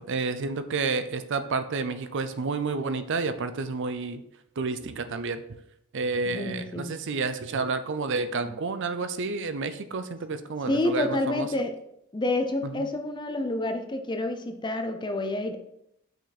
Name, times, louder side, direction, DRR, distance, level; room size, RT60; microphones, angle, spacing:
voice 1, 0.0-4.2 4.6-5.4 5.9-11.5 12.6-12.9, right 4 dB, 55° right, 11 dB, 0.5 m, -30 dB
voice 2, 6.2-7.0 10.7-11.8 12.1-15.6, left 2 dB, 20° left, 6 dB, 0.6 m, -28 dB
5.9 x 5.6 x 4.1 m, 0.77 s
head